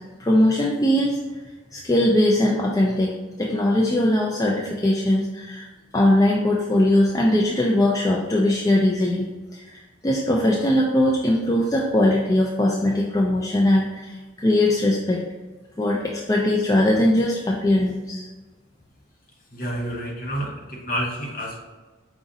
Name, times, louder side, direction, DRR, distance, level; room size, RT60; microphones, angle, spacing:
voice 1, 0.2-1.2 1.7-3.1 3.4-5.7 5.9-15.2 15.8-18.2, left 1 dB, 20° left, -2 dB, 0.3 m, -20 dB
voice 2, 19.5-21.6, equal, 45° left, -1 dB, 0.9 m, -29 dB
4.9 x 2.5 x 3.9 m, 1.3 s
head